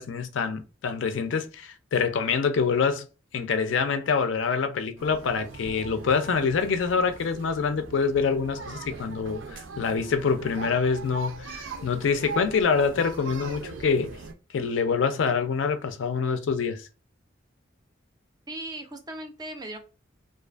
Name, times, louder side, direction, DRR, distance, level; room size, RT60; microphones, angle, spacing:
voice 1, 0.0-3.0 3.3-14.1 14.5-16.8, left 5 dB, 70° left, 0.4 m, -26 dB
sound 1, 5.0-14.3, right 4 dB, 75° right, 0.5 m, -40 dB
voice 2, 18.5-19.8, right 1 dB, 20° right, 0.4 m, -37 dB
2.4 x 2.4 x 2.3 m
head